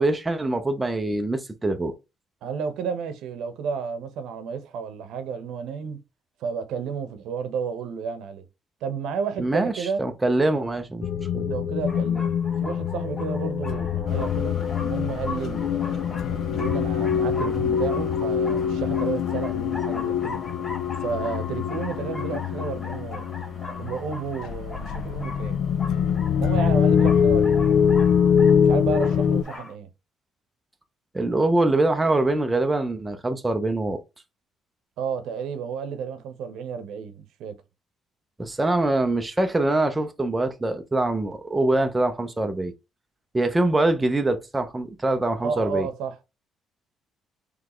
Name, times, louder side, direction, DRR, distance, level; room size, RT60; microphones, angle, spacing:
voice 1, 0.0-1.9 9.4-11.5 31.1-34.0 38.4-42.7 43.3-45.9, right 2 dB, 10° right, 0.6 m, -24 dB
voice 2, 2.4-6.0 6.4-8.4 8.8-10.0 11.4-12.3 12.6-16.1 16.5-20.4 21.0-23.3 23.8-25.6 26.4-27.9 28.5-29.9 35.0-37.6 45.4-46.3, right 6 dB, 75° right, 0.9 m, -32 dB
sound 1, 11.0-29.4, left 7 dB, 65° left, 0.4 m, -24 dB
sound 2, 11.9-29.7, left 2 dB, 20° left, 1.0 m, -41 dB
sound 3, 14.0-29.6, left 3 dB, 40° left, 1.8 m, -44 dB
4.0 x 3.2 x 3.0 m
cardioid pair, 150°, 0 cm